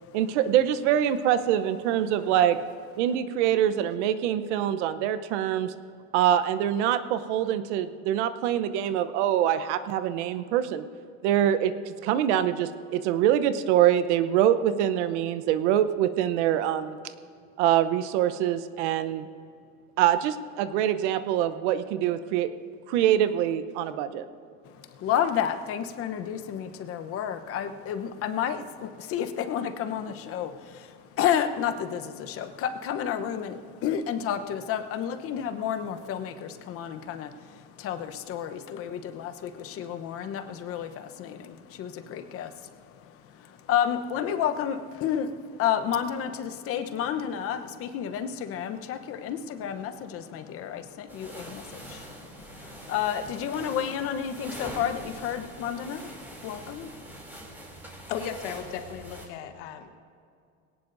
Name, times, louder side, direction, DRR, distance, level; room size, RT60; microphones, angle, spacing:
voice 1, 0.1-2.6 3.0-5.7 6.1-10.8 11.2-17.0 17.6-19.3 20.0-22.5 22.9-24.2, right 11 dB, 75° right, 12 dB, 0.9 m, -24 dB
voice 2, 24.6-57.2, left 9 dB, 40° left, 8 dB, 1.0 m, -31 dB
sound 1, 51.1-59.3, right 1 dB, 5° right, 2.9 m, -43 dB
voice 3, 58.1-60.0, left 8 dB, 70° left, 6 dB, 1.4 m, -36 dB
20.0 x 18.0 x 2.7 m, 2.3 s
supercardioid pair, 135°, 35 cm